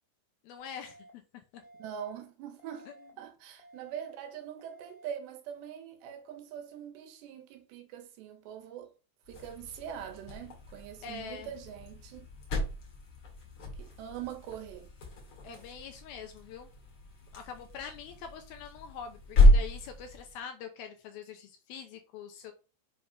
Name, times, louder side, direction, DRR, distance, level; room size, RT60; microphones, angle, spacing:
voice 1, 0.4-1.2 1.5-1.6 11.0-11.5 15.4-16.7 17.3-22.5, left 7 dB, 75° left, 2.4 m, -44 dB
sound 1, 0.6-1.1 1.6-2.1 2.6-3.1 3.6-4.1 4.6-5.1, right 2 dB, 55° left, 4.0 m, -55 dB
voice 2, 1.8-2.9 3.2-8.9 9.3-12.3 13.8-14.9, right 9 dB, 80° right, 3.3 m, -43 dB
sound 2, 9.2-20.4, left 1 dB, 40° left, 2.3 m, -30 dB
7.8 x 3.6 x 5.3 m
omnidirectional pair, 5.0 m